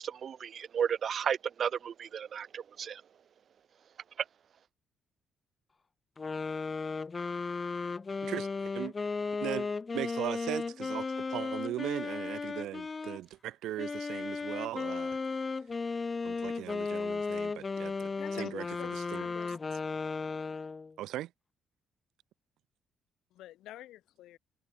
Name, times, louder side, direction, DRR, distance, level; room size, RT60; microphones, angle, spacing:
voice 1, 0.0-3.0, right 8 dB, 55° right, 2.3 m, -33 dB
sound 1, 6.2-13.2 13.8-20.9, left 4 dB, 30° left, 3.5 m, -35 dB
voice 2, 8.2-8.9 9.4-9.7 9.9-15.2 16.2-18.6 19.1-19.2 21.0-21.3, right 14 dB, 85° right, 5.1 m, -38 dB
voice 3, 18.2-19.6 23.3-24.4, left 14 dB, 85° left, 4.0 m, -47 dB
cardioid pair, 90°, 0 cm